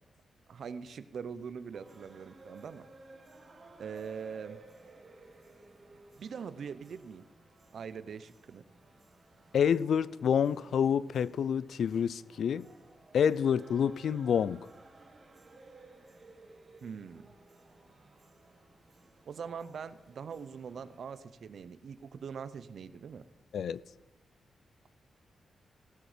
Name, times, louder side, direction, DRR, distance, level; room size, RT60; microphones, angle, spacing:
voice 1, 0.5-2.9 3.8-4.6 6.2-7.3 7.7-8.6 16.8-17.3 19.3-23.2, right 6 dB, 65° right, 0.6 m, -42 dB
sound 1, 1.7-21.0, right 2 dB, 35° right, 1.8 m, -57 dB
voice 2, 9.5-12.7 13.1-14.7 23.5-23.8, left 8 dB, 75° left, 0.3 m, -28 dB
17.0 x 7.8 x 5.0 m
wide cardioid pair, 125°, 0 cm